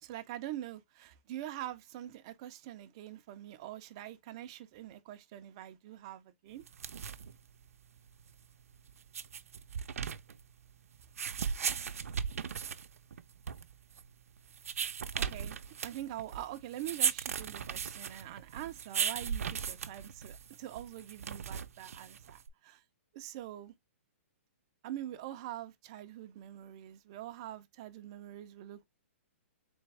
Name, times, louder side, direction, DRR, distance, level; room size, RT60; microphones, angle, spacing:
voice 1, 0.0-6.6 15.1-15.6 15.8-22.8 23.1-23.7 24.8-28.9, right 13 dB, 25° right, 0.4 m, -44 dB
sound 1, 6.6-22.5, right 7 dB, 85° right, 0.5 m, -38 dB
3.9 x 3.4 x 3.3 m
hypercardioid pair, 175°, 8 cm